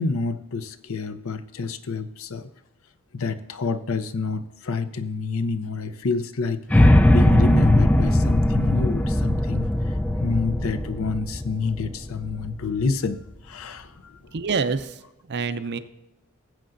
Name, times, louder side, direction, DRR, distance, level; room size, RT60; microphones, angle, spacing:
voice 1, 0.0-2.5 3.1-14.2, left 4 dB, 65° left, 12 dB, 0.6 m, -28 dB
sound 1, 6.7-12.8, left 1 dB, 5° left, 0.3 m, -19 dB
voice 2, 14.3-15.8, right 4 dB, 50° right, 11 dB, 0.6 m, -27 dB
19.0 x 7.6 x 2.6 m, 0.96 s
head